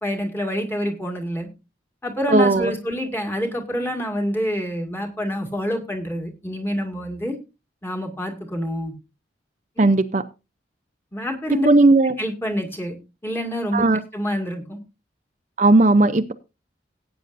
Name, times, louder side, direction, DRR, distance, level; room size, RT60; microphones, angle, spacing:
voice 1, 0.0-1.5 2.0-7.4 7.8-8.9 9.8-9.9 11.1-11.7 12.2-13.0 13.2-13.9 14.1-14.8, equal, 10° left, 2.0 m, -27 dB
voice 2, 2.3-2.7 9.8-10.2 11.7-12.1 13.7-14.0 15.6-16.3, right 2 dB, 40° right, 0.6 m, -16 dB
18.0 x 9.0 x 2.6 m
head